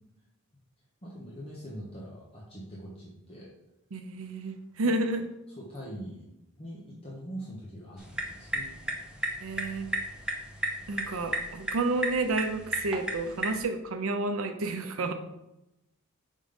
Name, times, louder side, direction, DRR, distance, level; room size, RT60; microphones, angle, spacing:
voice 1, 1.0-3.5 4.8-5.1 5.6-6.2 6.6-8.7, equal, 25° left, -5 dB, 1.0 m, -42 dB
voice 2, 3.9-5.3 9.4-9.9 10.9-15.1, right 2 dB, 70° right, 7 dB, 0.6 m, -30 dB
sound 1, 8.0-13.6, equal, 5° right, 0.7 m, -35 dB
5.3 x 3.7 x 5.2 m, 0.89 s
head